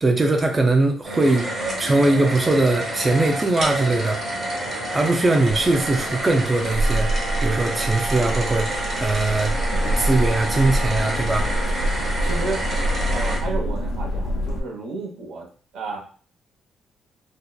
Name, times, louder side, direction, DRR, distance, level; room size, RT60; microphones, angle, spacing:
voice 1, 0.0-1.5 1.8-4.2 4.9-7.1 7.4-9.5 10.0-11.5, right 2 dB, 25° right, 2 dB, 0.4 m, -20 dB
sound 1, 1.0-13.4, right 1 dB, 45° right, 1.3 m, -28 dB
sound 2, 5.5-14.6, right 1 dB, 70° left, 0.3 m, -26 dB
voice 2, 12.2-12.6 13.0-15.5 15.7-16.0, right 3 dB, 80° right, -1 dB, 0.8 m, -32 dB
2.7 x 2.0 x 2.2 m, 0.41 s
cardioid pair, 90°, 0 cm